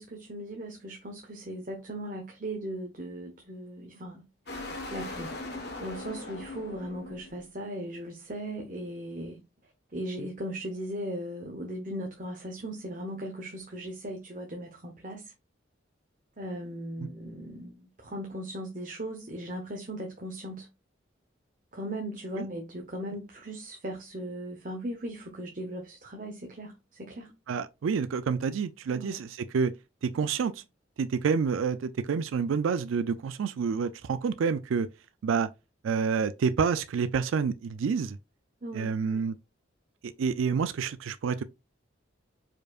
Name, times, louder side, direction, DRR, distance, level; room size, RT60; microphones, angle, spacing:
voice 1, 0.0-5.3 5.8-9.4 9.9-15.3 16.4-20.7 21.7-27.3 28.9-29.2 38.6-39.2, right 1 dB, 40° right, 0.9 m, -38 dB
sound 1, 4.5-7.5, left 2 dB, 55° left, 1.2 m, -39 dB
voice 2, 27.5-29.7 30.0-30.6 31.0-34.9 35.2-35.5 35.8-38.2 38.7-39.4 40.0-41.4, right 6 dB, 85° right, 0.4 m, -28 dB
5.0 x 4.4 x 2.4 m
head